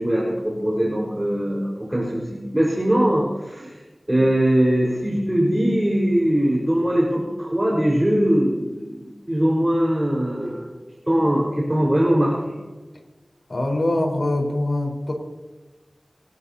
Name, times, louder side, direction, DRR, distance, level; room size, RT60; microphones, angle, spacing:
voice 1, 0.0-3.8 4.1-10.8 11.1-12.5, equal, 20° right, -3 dB, 4.8 m, -21 dB
voice 2, 13.5-15.1, left 1 dB, 65° left, 1 dB, 4.6 m, -23 dB
24.0 x 19.0 x 2.9 m, 1.2 s
wide cardioid pair, 50°, 0 cm